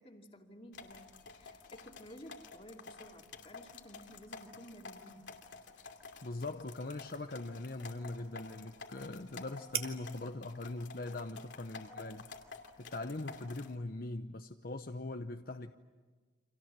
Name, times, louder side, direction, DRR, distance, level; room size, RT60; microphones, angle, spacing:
voice 1, 0.0-5.2 9.6-9.9 11.9-12.2, equal, 30° left, 2 dB, 2.6 m, -54 dB
sound 1, 0.7-13.8, left 4 dB, 80° left, 2.7 m, -51 dB
sound 2, 5.4-13.1, right 9 dB, 55° right, 2.3 m, -49 dB
voice 2, 6.2-12.3 12.8-15.7, left 2 dB, 50° left, 6 dB, 0.9 m, -41 dB
30.0 x 26.0 x 7.5 m, 1.4 s
head